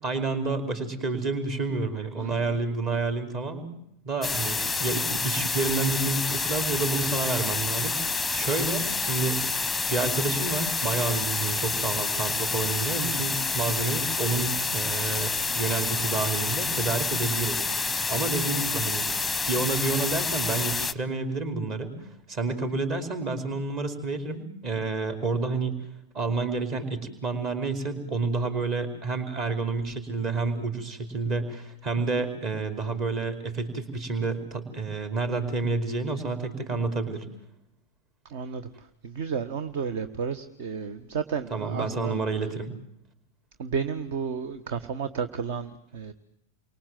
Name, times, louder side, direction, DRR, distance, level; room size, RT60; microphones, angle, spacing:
voice 1, 0.0-3.7 4.0-9.4 9.9-19.1 19.5-25.8 26.1-37.2 41.5-42.7, right 3 dB, 35° right, 7 dB, 4.9 m, -29 dB
sound 1, 4.2-20.9, left 4 dB, 5° left, 1.1 m, -28 dB
voice 2, 38.3-38.6 39.0-42.2 43.6-46.1, right 6 dB, 50° right, 12 dB, 1.5 m, -32 dB
30.0 x 24.5 x 7.7 m, 0.80 s
figure-of-eight pair, 90°, 0 cm